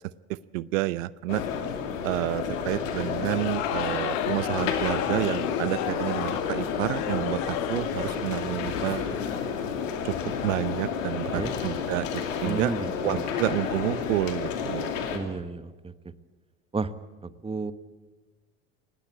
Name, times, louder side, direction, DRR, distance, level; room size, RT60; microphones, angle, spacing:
voice 1, 0.3-1.4 2.0-9.1 10.0-10.2 10.4-12.7 13.0-14.9, right 17 dB, 80° right, 19 dB, 0.6 m, -29 dB
sound 1, 1.3-15.2, left 6 dB, 90° left, 2.5 m, -31 dB
sound 2, 3.1-8.1, left 11 dB, 65° left, 1.9 m, -33 dB
voice 2, 12.4-13.2 15.1-15.9 16.7-16.9 17.2-17.7, right 4 dB, 15° right, 13 dB, 1.2 m, -32 dB
19.0 x 17.5 x 8.4 m, 1.3 s
hypercardioid pair, 80°, 38 cm